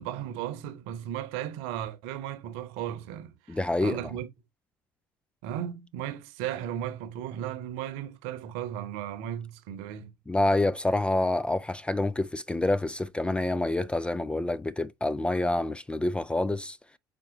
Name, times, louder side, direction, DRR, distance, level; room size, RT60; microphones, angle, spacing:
voice 1, 0.0-4.3 5.4-10.1, right 11 dB, 60° right, 1.0 m, -35 dB
voice 2, 3.5-4.0 10.3-16.8, left 2 dB, 10° left, 0.5 m, -27 dB
6.1 x 4.2 x 3.8 m
figure-of-eight pair, 60°, 11 cm